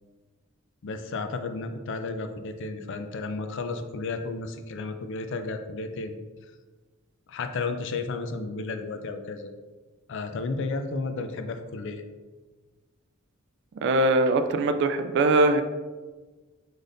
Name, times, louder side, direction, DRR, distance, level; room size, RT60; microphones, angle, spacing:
voice 1, 0.8-6.2 7.3-9.5 10.1-12.0, left 3 dB, 60° left, 8 dB, 0.4 m, -33 dB
voice 2, 13.8-15.6, right 2 dB, 55° right, 9 dB, 0.3 m, -21 dB
5.0 x 4.1 x 2.5 m, 1.3 s
head